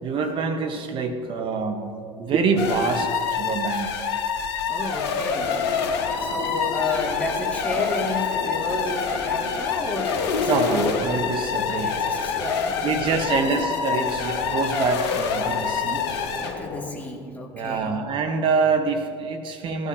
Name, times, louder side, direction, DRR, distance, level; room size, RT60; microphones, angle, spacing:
voice 1, 0.0-4.0 10.5-12.0 12.8-16.1 17.5-19.9, right 4 dB, 35° right, 5 dB, 1.1 m, -25 dB
sound 1, 2.6-16.6, left 6 dB, 60° left, 1.6 m, -26 dB
voice 2, 4.7-5.6 6.2-10.9 11.6-13.3 16.4-17.9, left 2 dB, 10° left, -1 dB, 2.4 m, -31 dB
sound 2, 5.3-16.9, left 5 dB, 35° left, 1.1 m, -35 dB
18.0 x 13.0 x 2.9 m, 2.4 s
figure-of-eight pair, 70°, 14 cm